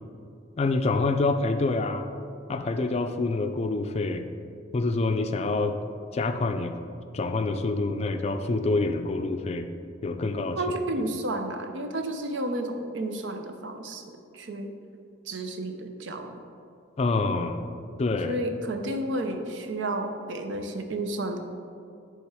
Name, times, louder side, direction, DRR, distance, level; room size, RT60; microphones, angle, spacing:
voice 1, 0.6-2.0 2.5-4.2 4.7-5.8 6.1-6.7 7.1-9.7 10.0-10.6 17.0-17.6 18.0-18.4, left 3 dB, 35° left, 7 dB, 0.4 m, -26 dB
voice 2, 10.6-14.7 15.3-16.3 18.3-21.4, right 1 dB, 75° right, 5 dB, 0.7 m, -31 dB
10.5 x 3.4 x 4.8 m, 2.4 s
head